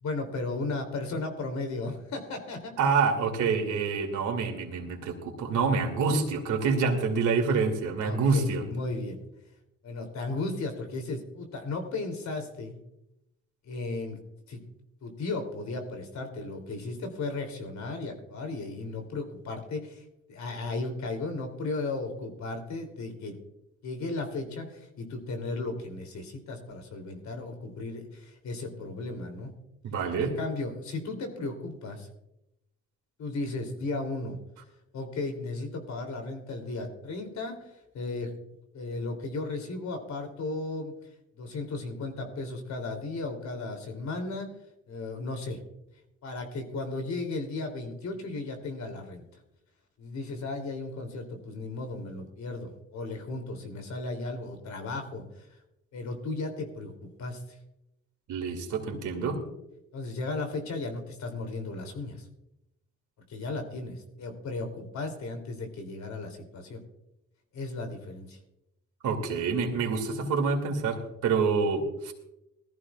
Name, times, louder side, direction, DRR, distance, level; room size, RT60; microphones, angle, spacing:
voice 1, 0.0-2.7 8.0-9.2 9.8-12.8 13.6-14.2 14.5-14.6 15.0-23.3 23.8-29.5 30.2-32.1 33.2-34.4 34.9-38.3 38.7-40.9 41.4-44.5 44.9-45.6 46.2-49.2 50.0-55.5 55.9-57.6 59.9-62.3 63.3-66.8 67.5-68.4, left 3 dB, 65° left, 5 dB, 3.1 m, -35 dB
voice 2, 2.8-8.6 29.8-30.3 58.3-59.4 69.0-72.1, right 4 dB, 80° right, 4 dB, 2.6 m, -27 dB
19.5 x 14.0 x 2.4 m, 0.86 s
cardioid pair, 90°, 30 cm